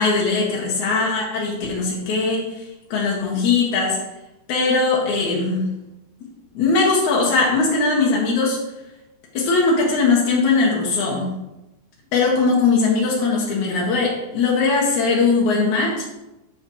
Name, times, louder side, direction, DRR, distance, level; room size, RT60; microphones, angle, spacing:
voice 1, 0.0-2.6 2.9-4.0 4.5-5.7 6.5-8.6 9.3-11.3 12.1-16.0, left 4 dB, 75° left, -4 dB, 2.9 m, -20 dB
9.2 x 8.3 x 3.1 m, 0.98 s
omnidirectional pair, 3.5 m